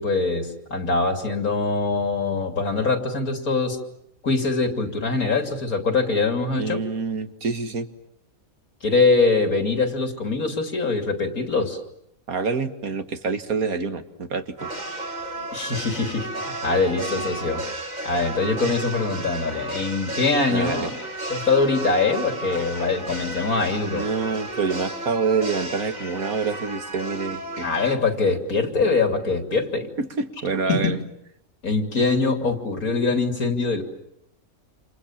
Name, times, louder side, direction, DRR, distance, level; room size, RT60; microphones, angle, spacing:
voice 1, 0.0-3.8 4.2-6.8 8.8-11.8 15.5-16.3 16.6-17.6 18.1-20.9 21.3-24.1 27.6-29.9 30.7-31.0 31.6-33.8, left 3 dB, 85° left, 5 dB, 3.4 m, -23 dB
voice 2, 6.6-7.9 12.3-14.7 20.5-20.9 23.9-27.7 30.0-31.0, right 4 dB, 80° right, 8 dB, 2.1 m, -27 dB
sound 1, 14.6-28.0, right 2 dB, 30° right, 2.7 m, -33 dB
29.0 x 28.0 x 7.3 m, 0.78 s
omnidirectional pair, 1.5 m